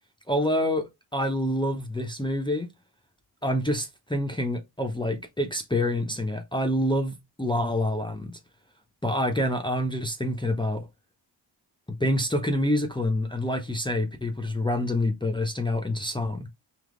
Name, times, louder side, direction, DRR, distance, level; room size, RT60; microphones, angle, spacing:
voice 1, 0.3-2.7 3.4-8.4 9.0-10.9 11.9-16.5, left 1 dB, 10° left, 0.6 m, -27 dB
3.5 x 2.8 x 3.7 m
cardioid pair, 105°, 45 cm